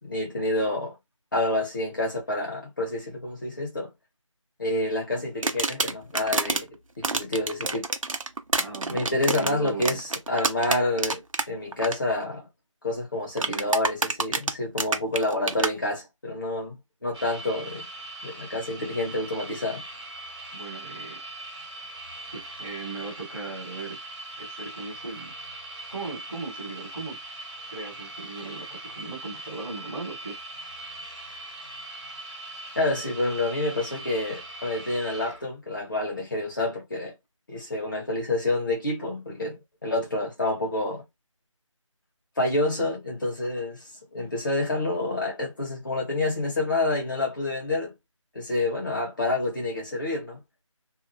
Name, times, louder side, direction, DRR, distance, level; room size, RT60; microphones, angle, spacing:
voice 1, 0.0-0.9 1.3-3.9 4.6-6.7 7.0-7.9 8.9-12.5 12.8-17.8 18.2-19.8 32.7-37.1 37.5-41.0 42.4-43.8 44.1-47.9 48.3-50.4, left 2 dB, 40° left, 1.2 m, -28 dB
sound 1, 5.4-6.6 7.0-11.5 11.7-12.0 13.4-15.7, right 3 dB, 80° right, 0.7 m, -27 dB
voice 2, 8.5-9.1 9.3-10.0 20.5-21.2 22.3-24.0 24.4-25.3 25.9-27.2 27.7-30.4, right 3 dB, 10° right, 0.7 m, -37 dB
sound 2, 17.1-35.4, right 2 dB, 55° right, 1.2 m, -41 dB
2.7 x 2.1 x 2.6 m
figure-of-eight pair, 170°, 17 cm